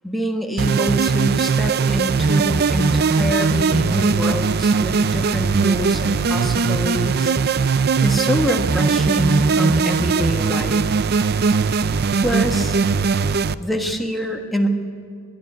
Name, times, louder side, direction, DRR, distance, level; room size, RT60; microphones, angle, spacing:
voice 1, 0.0-7.3 8.0-10.8 12.2-12.8 13.6-14.7, equal, ahead, 2 dB, 1.5 m, -25 dB
sound 1, 0.6-13.5, right 5 dB, 45° right, 0.4 m, -19 dB
22.5 x 12.0 x 9.7 m, 2.3 s
head